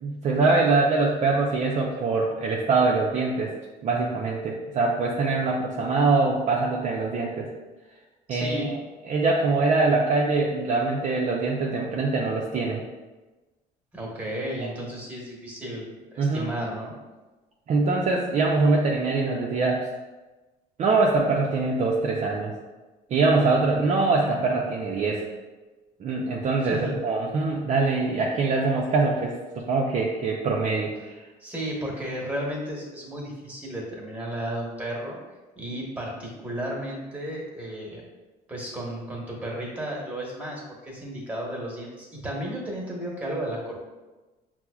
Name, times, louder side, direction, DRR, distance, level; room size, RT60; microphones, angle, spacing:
voice 1, 0.0-3.5 3.8-7.5 8.3-8.8 9.1-12.8 14.6-14.7 16.2-16.5 17.7-19.9 20.8-22.5 23.1-25.3 26.0-31.2, right 3 dB, 45° right, -2 dB, 0.4 m, -23 dB
voice 2, 8.3-8.7 13.9-16.9 26.7-27.0 31.4-35.2 35.6-38.0 38.5-43.8, right 1 dB, 10° right, -3 dB, 1.1 m, -33 dB
5.7 x 2.0 x 2.3 m, 1.2 s
cardioid pair, 110°, 17 cm